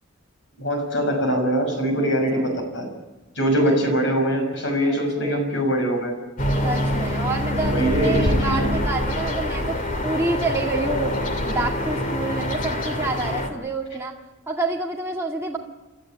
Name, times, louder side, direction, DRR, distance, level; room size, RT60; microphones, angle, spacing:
voice 1, 0.6-2.9 3.3-6.1 7.6-8.7, equal, 55° left, 3 dB, 6.4 m, -23 dB
voice 2, 1.9-2.7 3.6-3.8 4.9-5.5 6.6-9.8 10.0-11.1 11.4-14.1 14.5-15.6, right 2 dB, 10° right, -2 dB, 2.0 m, -28 dB
sound 1, 6.4-13.5, left 1 dB, 35° left, 2.4 m, -25 dB
30.0 x 13.0 x 8.8 m, 1.2 s
head